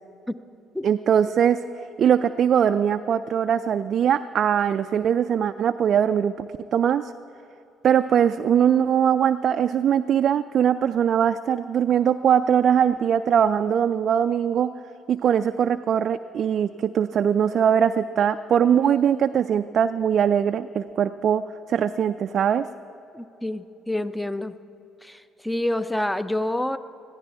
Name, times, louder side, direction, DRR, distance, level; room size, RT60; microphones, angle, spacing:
voice 1, 0.8-1.6 2.0-7.1 7.8-14.7 15.1-22.7, right 8 dB, 55° right, 8 dB, 0.3 m, -21 dB
voice 2, 23.1-24.5 25.0-26.8, left 1 dB, 5° left, 13 dB, 0.6 m, -28 dB
20.5 x 14.5 x 3.5 m, 2.8 s
hypercardioid pair, 55°, 0 cm